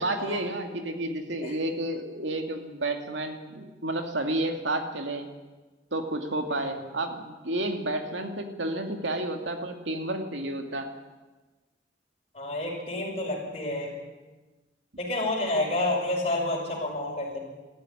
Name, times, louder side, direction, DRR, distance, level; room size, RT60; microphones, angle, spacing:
voice 1, 0.0-5.3 5.9-10.9, right 1 dB, 85° right, 5 dB, 2.5 m, -31 dB
voice 2, 12.3-13.9 15.0-17.4, left 2 dB, 35° left, -1 dB, 6.2 m, -29 dB
19.5 x 14.0 x 9.9 m, 1.2 s
head